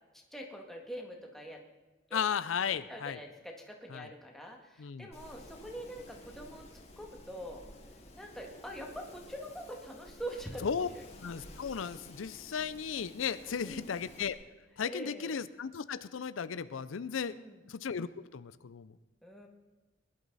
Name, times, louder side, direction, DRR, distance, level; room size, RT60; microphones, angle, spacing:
voice 1, 0.3-1.6 2.1-2.2 2.7-7.6 8.1-11.0 13.4-14.0 14.8-15.3 17.3-17.6 19.2-19.5, equal, ahead, 0 dB, 1.9 m, -44 dB
voice 2, 2.1-3.2 3.9-4.1 4.8-5.1 10.6-10.9 11.2-14.4 14.8-17.4 17.7-18.9, left 7 dB, 85° left, 15 dB, 0.5 m, -35 dB
Wind, 5.1-14.3, left 1 dB, 35° left, 2.3 m, -53 dB
21.0 x 11.5 x 4.1 m, 1.2 s
head